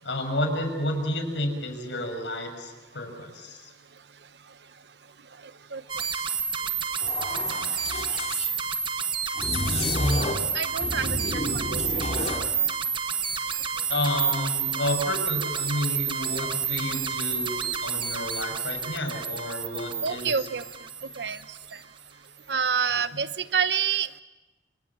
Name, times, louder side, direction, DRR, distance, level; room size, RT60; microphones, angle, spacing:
voice 1, 0.0-3.6 7.5-7.7 13.9-20.5, left 1 dB, 80° left, 5 dB, 6.6 m, -30 dB
sound 1, 5.9-21.8, right 6 dB, 30° right, 1.3 m, -30 dB
sound 2, 7.0-8.5 9.4-10.5 10.8-12.5, left 2 dB, 35° left, 3.3 m, -30 dB
voice 2, 10.5-12.2 20.0-20.6 21.2-21.4 22.5-24.2, right 6 dB, 70° right, 12 dB, 1.0 m, -28 dB
29.0 x 27.5 x 7.5 m, 1.1 s
head